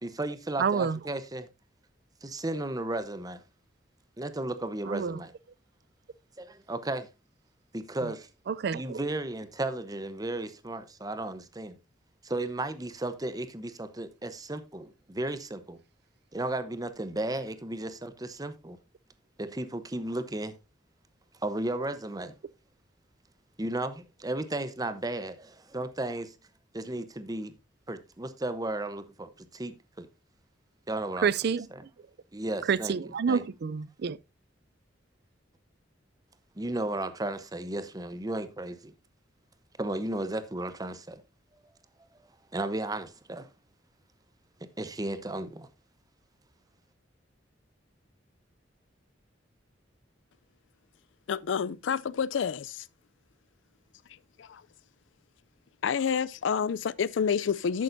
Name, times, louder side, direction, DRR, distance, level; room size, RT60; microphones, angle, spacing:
voice 1, 0.0-1.5 2.2-3.4 4.2-5.3 6.4-7.1 7.7-8.3 8.7-11.7 12.2-15.8 16.3-18.8 19.4-20.6 21.4-22.3 23.6-26.3 26.7-27.5 27.9-30.1 30.9-31.3 31.7-31.8 32.3-33.4 36.6-38.9 39.8-41.2 42.5-43.5 44.8-45.7, right 2 dB, 20° right, 0.8 m, -34 dB
voice 2, 0.6-1.0 4.9-5.2 8.5-9.0 31.2-31.7 32.7-34.2, right 6 dB, 60° right, 0.4 m, -28 dB
voice 3, 51.3-52.8 54.4-54.6 55.8-57.8, left 6 dB, 80° left, 0.4 m, -29 dB
11.0 x 8.5 x 2.6 m
head